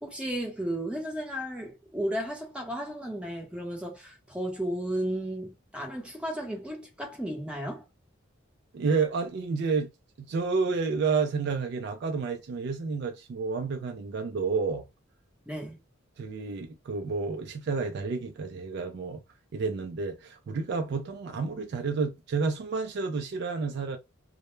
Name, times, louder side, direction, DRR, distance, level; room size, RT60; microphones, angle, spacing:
voice 1, 0.0-7.8 15.5-15.8, right 1 dB, 5° right, 0.8 m, -34 dB
voice 2, 8.7-9.9 10.2-14.8 16.2-19.2 19.5-24.0, right 4 dB, 55° right, 0.3 m, -30 dB
2.1 x 2.1 x 3.0 m
head